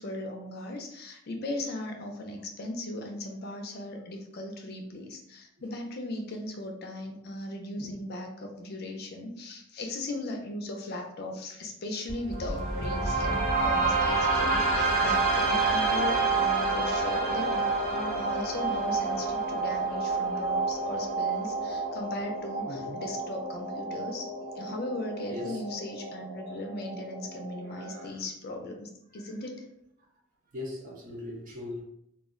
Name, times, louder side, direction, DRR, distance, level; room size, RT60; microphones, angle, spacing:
voice 1, 0.0-24.3 24.6-29.6, left 1 dB, 50° left, 3 dB, 0.4 m, -37 dB
voice 2, 7.7-8.1 22.7-23.0 25.3-25.6 27.7-28.2 29.1-29.4 30.5-31.8, left 1 dB, 40° right, -3 dB, 0.7 m, -40 dB
sound 1, 12.1-28.1, right 3 dB, 70° right, 1.3 m, -29 dB
2.3 x 2.1 x 3.5 m, 0.76 s
head